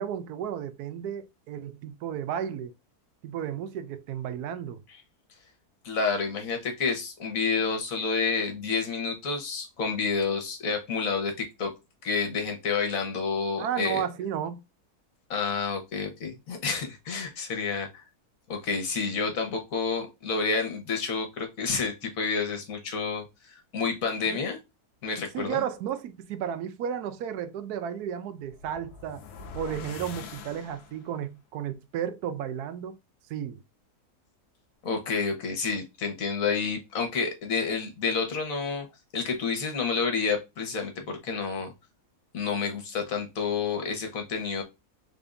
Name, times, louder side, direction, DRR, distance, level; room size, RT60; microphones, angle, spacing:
voice 1, 0.0-2.7 3.2-4.8 13.6-14.6 24.3-24.4 25.3-29.2 29.5-33.0 33.3-33.6, right 9 dB, 80° right, 1.1 m, -33 dB
voice 2, 5.8-11.7 12.0-14.0 15.3-18.0 18.5-24.6 25.0-25.6 34.8-38.9 39.1-41.7 42.3-44.6, left 5 dB, 60° left, 1.6 m, -29 dB
sound 1, 28.4-31.2, left 5 dB, 80° left, 1.3 m, -43 dB
3.9 x 3.5 x 2.5 m
omnidirectional pair, 1.7 m